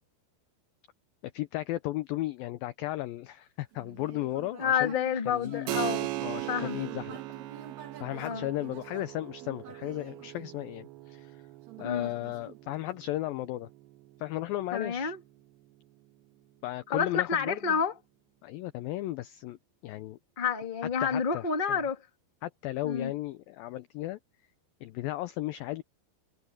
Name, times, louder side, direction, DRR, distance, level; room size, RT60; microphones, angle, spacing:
voice 1, 1.2-4.9 5.3-5.8 6.2-7.2 8.0-11.4 11.8-13.7 14.2-15.1 16.6-17.6 18.4-19.6 19.8-20.2 21.0-21.8 22.4-24.2 24.8-25.8, left 16 dB, 85° left, 2.0 m, -35 dB
Human voice, 3.7-11.1 11.7-13.1, right 9 dB, 50° right, 2.8 m, -48 dB
voice 2, 4.6-6.1 6.5-6.8 8.2-8.5 11.8-12.1 14.7-15.2 16.9-17.9 20.4-22.0 22.8-23.1, left 6 dB, 25° left, 1.0 m, -29 dB
Keyboard (musical), 5.7-15.9, right 18 dB, 80° right, 2.8 m, -40 dB
omnidirectional pair, 5.0 m